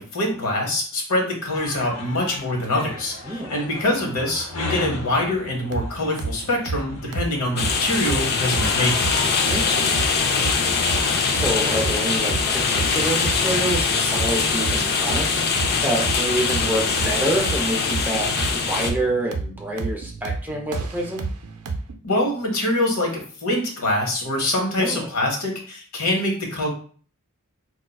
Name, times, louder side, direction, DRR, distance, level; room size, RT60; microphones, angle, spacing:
voice 1, 0.0-9.1 22.0-26.7, left 1 dB, 70° left, 1 dB, 1.1 m, -24 dB
sound 1, 1.5-12.8, left 2 dB, 85° left, 0.7 m, -37 dB
voice 2, 3.2-3.6 9.5-10.0 11.3-15.4 15.8-21.3 24.8-25.1, right 1 dB, 10° right, 0 dB, 0.5 m, -27 dB
sound 2, 5.7-21.9, right 4 dB, 85° right, 0.5 m, -31 dB
sound 3, 7.6-18.9, left 5 dB, 45° left, 0.4 m, -22 dB
4.3 x 2.3 x 2.3 m, 0.43 s
head